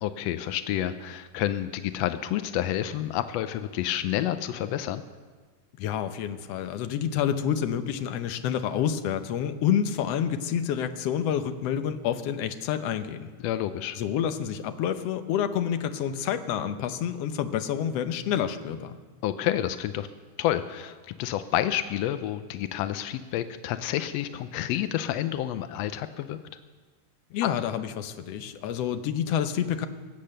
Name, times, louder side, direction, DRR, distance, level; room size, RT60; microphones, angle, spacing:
voice 1, 0.0-5.0 13.4-14.0 19.2-20.1 20.4-26.4, left 12 dB, 90° left, 11 dB, 1.4 m, -29 dB
voice 2, 5.8-13.3 14.0-19.0 27.3-29.9, left 9 dB, 70° left, 9 dB, 1.6 m, -28 dB
23.5 x 8.6 x 6.6 m, 1.5 s
omnidirectional pair, 3.7 m